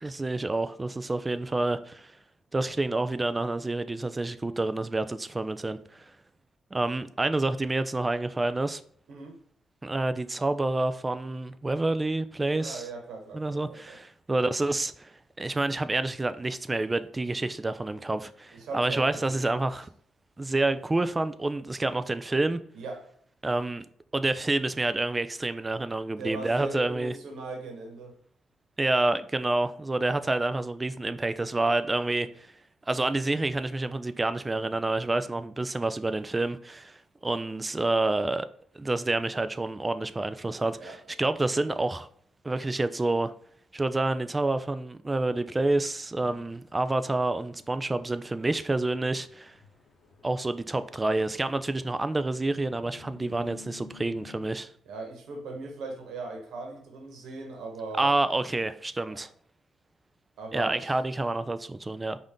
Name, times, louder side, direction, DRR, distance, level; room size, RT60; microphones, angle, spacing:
voice 1, 0.0-2.1 2.5-6.1 6.7-8.8 9.8-12.8 13.3-15.1 15.4-19.9 20.4-22.6 23.4-23.8 24.1-27.1 28.8-32.5 32.9-37.0 37.2-38.5 38.8-42.1 42.4-43.3 43.7-49.6 50.2-54.7 58.0-59.3 60.5-62.2, right 2 dB, 20° right, 0.3 m, -28 dB
voice 2, 12.5-14.0 18.5-19.6 22.7-23.0 26.2-28.1 40.7-41.1 54.8-58.1 59.1-59.3 60.4-60.9, right 3 dB, 75° right, 1.1 m, -39 dB
sound 1, 46.2-54.5, left 9 dB, 60° left, 0.7 m, -54 dB
5.4 x 2.6 x 3.6 m
cardioid pair, 90°, 0 cm